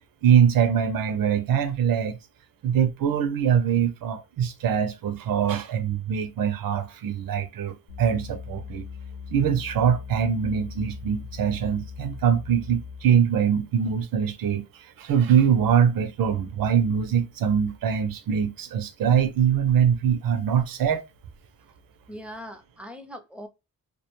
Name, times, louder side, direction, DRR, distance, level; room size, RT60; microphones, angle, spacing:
voice 1, 0.2-2.2 2.6-8.9 9.3-21.0, right 8 dB, 75° right, 0.5 m, -23 dB
sound 1, 7.9-13.2, left 6 dB, 70° left, 0.8 m, -40 dB
voice 2, 22.1-23.5, equal, 5° right, 0.4 m, -40 dB
2.3 x 2.2 x 2.9 m
cardioid pair, 80°, 34 cm